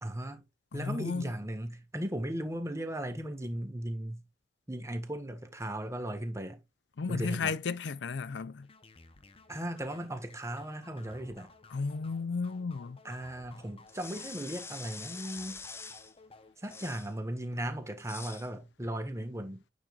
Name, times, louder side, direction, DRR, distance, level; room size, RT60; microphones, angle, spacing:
voice 1, 0.0-0.4 0.7-4.2 4.7-6.6 7.1-7.5 9.5-11.5 13.0-15.6 16.6-19.6, right 1 dB, 15° right, 1.6 m, -37 dB
voice 2, 0.7-1.3 7.0-8.7 11.7-13.0, left 4 dB, 70° left, 0.5 m, -34 dB
sound 1, 8.6-16.9, left 3 dB, 30° left, 0.9 m, -57 dB
sound 2, 13.9-16.1 16.6-17.1 18.0-18.5, left 4 dB, 15° left, 0.6 m, -45 dB
8.8 x 5.1 x 2.4 m
head